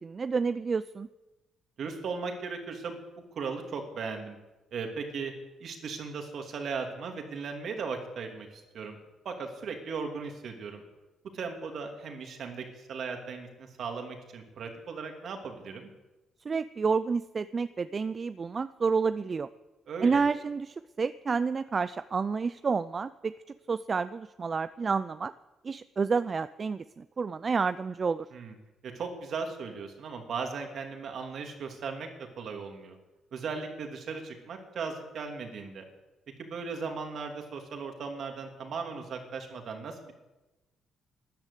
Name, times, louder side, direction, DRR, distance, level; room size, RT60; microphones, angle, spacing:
voice 1, 0.0-1.1 16.5-19.5 20.0-23.3 23.7-25.3 25.6-28.3, right 5 dB, 35° right, 14 dB, 0.4 m, -29 dB
voice 2, 1.8-3.0 3.3-4.4 4.7-5.3 5.6-9.0 9.2-10.8 11.3-15.9 19.9-20.2 28.3-28.5 28.8-32.1 32.4-33.0 33.3-35.8 36.4-40.1, right 5 dB, 60° right, 4 dB, 2.7 m, -37 dB
13.0 x 10.5 x 8.3 m, 1.1 s
cardioid pair, 90°, 0 cm